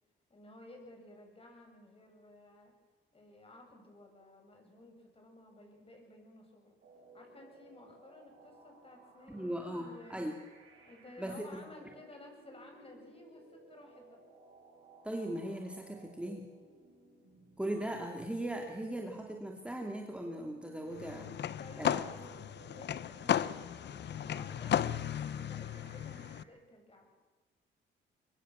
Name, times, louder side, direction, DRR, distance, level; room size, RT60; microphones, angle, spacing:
voice 1, 0.3-2.7 3.1-6.8 7.1-10.2 10.8-14.2 21.6-22.3 22.7-27.1, left 2 dB, 30° left, 3 dB, 7.9 m, -55 dB
sound 1, 6.8-26.4, right 3 dB, 65° right, 7.8 m, -60 dB
voice 2, 9.3-10.3 11.2-11.6 15.0-16.5 17.6-21.3 21.8-22.0, right 1 dB, 5° right, 1 dB, 2.8 m, -38 dB
sound 2, 20.9-26.4, left 10 dB, 60° left, 0.9 m, -35 dB
24.5 x 22.0 x 7.5 m, 1.3 s
cardioid pair, 90°, 20 cm